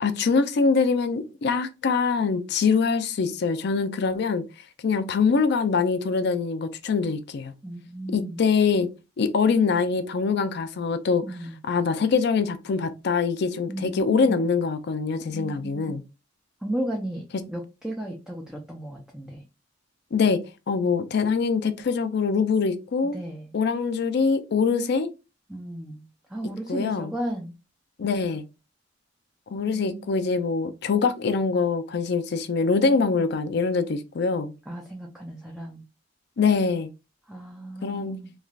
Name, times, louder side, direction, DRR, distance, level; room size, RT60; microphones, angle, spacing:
voice 1, 0.0-4.4 4.8-7.5 8.1-8.9 9.2-11.2 11.6-16.0 20.1-20.4 20.7-23.2 23.5-25.1 26.7-27.1 28.0-28.4 29.5-34.5 36.4-36.9 37.8-38.2, left 5 dB, 60° left, 0.4 m, -24 dB
voice 2, 7.6-8.4 11.2-11.6 13.7-14.4 15.3-16.0 16.6-19.4 23.1-23.5 25.5-26.0 26.3-27.5 29.7-30.2 32.9-33.3 34.7-35.8 37.3-38.3, right 1 dB, 5° right, 0.4 m, -34 dB
3.2 x 2.4 x 2.3 m
head